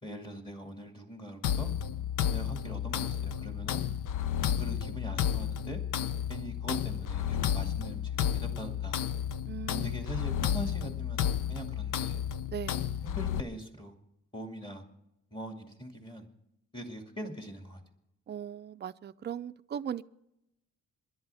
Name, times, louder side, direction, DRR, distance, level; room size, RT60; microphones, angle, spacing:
voice 1, 0.0-1.7 2.3-3.8 4.5-5.8 6.3-9.0 9.8-12.2 13.0-13.9 14.3-14.8 15.3-16.3 16.7-17.8, equal, 15° left, 2.3 m, -42 dB
sound 1, 1.4-13.4, left 9 dB, 85° left, 0.7 m, -32 dB
voice 2, 9.4-10.0 12.5-13.0 18.3-20.0, right 9 dB, 35° right, 0.4 m, -39 dB
27.0 x 11.0 x 3.5 m
cardioid pair, 130°, 31 cm